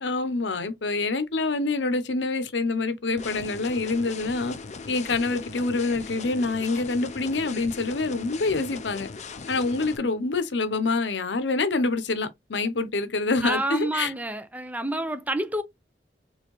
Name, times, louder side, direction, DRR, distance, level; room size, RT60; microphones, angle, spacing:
voice 1, 0.0-4.6 4.9-9.1 9.5-14.1, left 3 dB, 70° left, 0.8 m, -26 dB
sound 1, 3.2-10.0, left 4 dB, 40° left, 0.5 m, -39 dB
voice 2, 13.4-15.6, right 1 dB, 10° right, 0.6 m, -28 dB
4.5 x 3.3 x 3.0 m
head